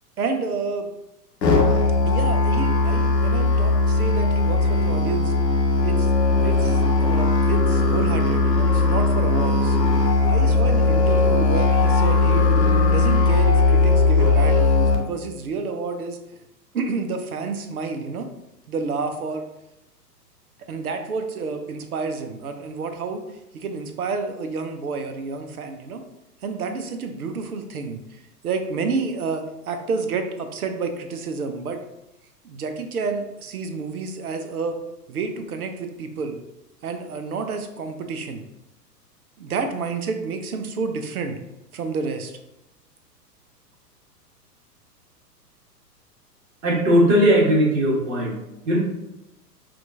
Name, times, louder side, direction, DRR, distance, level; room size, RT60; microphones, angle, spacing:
voice 1, 0.2-0.9 2.1-5.3 5.8-6.1 6.4-9.8 10.3-12.5 12.9-16.2 16.7-18.3 18.7-19.4 20.7-23.2 23.5-26.0 26.4-31.8 32.4-34.8 35.1-36.4 36.8-38.4 39.4-41.4 41.7-42.4, right 4 dB, 65° right, 6 dB, 0.7 m, -29 dB
Musical instrument, 1.4-14.9, left 3 dB, 80° left, 0.9 m, -18 dB
voice 2, 46.6-48.4 48.6-48.8, equal, 45° right, -3 dB, 1.4 m, -18 dB
5.8 x 2.5 x 2.6 m, 0.90 s
figure-of-eight pair, 105°, 49 cm